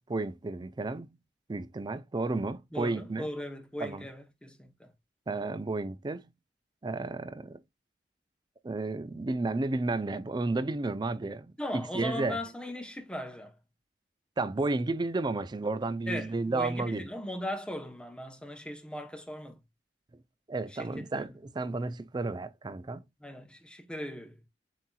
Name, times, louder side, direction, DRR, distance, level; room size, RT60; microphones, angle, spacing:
voice 1, 0.1-1.2 1.5-3.3 3.8-4.1 5.3-6.3 6.8-7.6 8.6-12.4 14.4-17.1 20.5-23.0, right 3 dB, 25° right, 0.4 m, -32 dB
voice 2, 2.7-4.9 11.6-13.6 16.1-19.6 20.7-21.3 23.2-24.4, left 1 dB, 5° left, 0.8 m, -38 dB
7.6 x 2.8 x 2.3 m
head